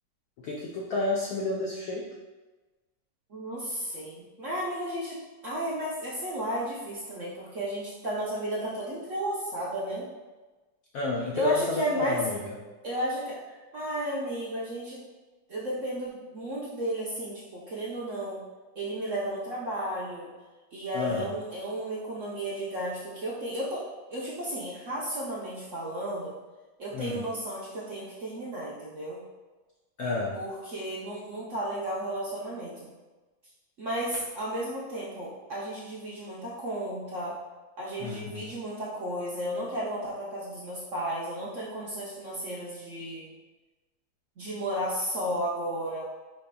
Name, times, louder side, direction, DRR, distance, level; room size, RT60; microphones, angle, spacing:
voice 1, 0.4-2.1 10.9-12.5 20.9-21.3 26.9-27.3 30.0-30.4 38.0-38.5, left 3 dB, 80° left, -2 dB, 0.8 m, -30 dB
voice 2, 3.3-10.1 11.4-12.2 12.8-15.0 15.5-18.4 18.8-20.3 20.7-26.3 26.8-29.2 30.3-32.9 33.8-37.4 37.8-43.3 44.4-46.0, right 1 dB, 60° right, -6 dB, 0.8 m, -33 dB
5.1 x 4.1 x 2.2 m, 1.2 s
omnidirectional pair, 2.1 m